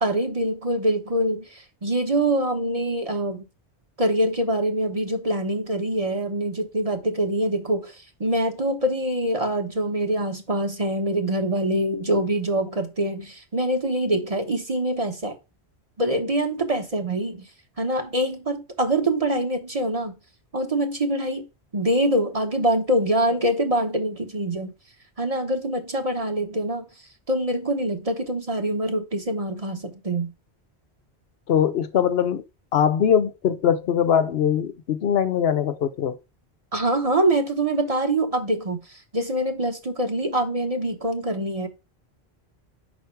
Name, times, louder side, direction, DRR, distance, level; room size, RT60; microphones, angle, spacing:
voice 1, 0.0-3.5 4.0-7.9 8.2-15.4 16.0-17.5 17.8-20.1 20.5-21.4 21.7-24.7 25.2-26.8 27.3-30.3 36.7-38.8 39.1-41.7, right 1 dB, 35° right, 1.1 m, -24 dB
voice 2, 31.5-32.4 32.7-36.2, left 8 dB, 70° left, 0.9 m, -21 dB
5.8 x 4.4 x 4.6 m
omnidirectional pair, 1.1 m